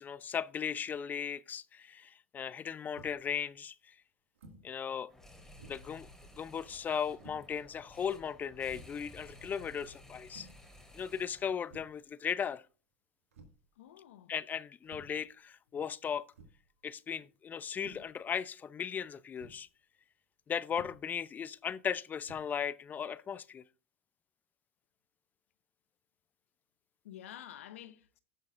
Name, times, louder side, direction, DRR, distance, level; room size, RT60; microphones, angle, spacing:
voice 1, 0.0-3.9 4.6-5.1 5.7-6.1 6.4-10.5 10.9-12.6 14.3-16.2 16.8-19.7 20.5-23.6, left 7 dB, 25° left, 0.4 m, -37 dB
sound 1, 3.0-3.3 4.3-4.7 5.1-5.2 5.6-6.0 7.2-7.5 8.2-8.3 8.7-9.0 10.3-10.7 11.6-12.0 13.3-13.7 14.8-15.2 16.3-16.7 17.7-18.2 19.4-19.6 20.7-21.1 22.2-22.4, right 2 dB, 85° right, 2.0 m, -54 dB
sound 2, 5.1-11.6, left 1 dB, 5° left, 3.5 m, -55 dB
voice 2, 13.8-14.3 27.0-28.2, left 11 dB, 75° left, 0.9 m, -49 dB
16.5 x 6.4 x 2.5 m
hypercardioid pair, 100°, 7 cm